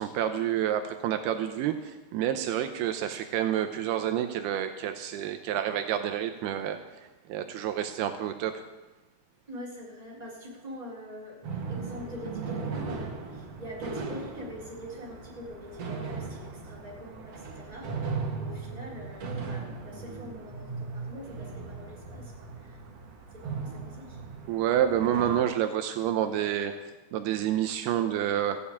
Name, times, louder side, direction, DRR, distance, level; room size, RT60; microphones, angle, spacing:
voice 1, 0.0-6.8 7.3-8.6 24.5-26.7 27.1-28.6, right 10 dB, 80° right, 8 dB, 2.7 m, -28 dB
voice 2, 9.5-22.8 23.3-24.2, left 1 dB, 10° right, -4 dB, 3.7 m, -44 dB
sound 1, 11.4-25.4, right 4 dB, 50° right, 2.2 m, -38 dB
15.0 x 8.4 x 8.5 m, 1.1 s
omnidirectional pair, 4.6 m